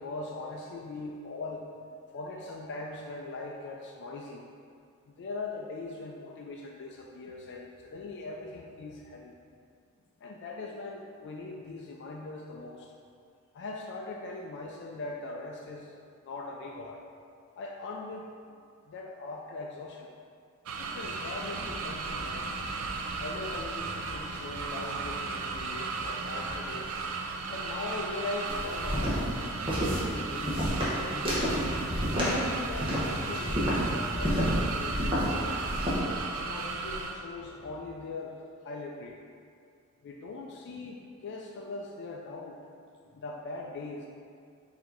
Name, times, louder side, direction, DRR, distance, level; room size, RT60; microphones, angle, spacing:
voice 1, 0.0-4.5 5.1-9.4 10.2-12.9 13.5-16.0 16.2-17.0 17.5-18.6 18.9-20.1 20.8-22.5 23.2-29.2 29.8-31.3 32.1-35.7 36.4-39.4 40.0-42.6 43.0-44.1, left 3 dB, 55° left, 0 dB, 0.3 m, -41 dB
sound 1, 20.7-37.2, right 4 dB, 75° right, 0.4 m, -35 dB
sound 2, 21.3-28.1, equal, 55° right, 0.9 m, -47 dB
sound 3, 28.5-36.0, equal, 25° right, 0.9 m, -30 dB
4.6 x 2.7 x 3.8 m, 2.3 s
head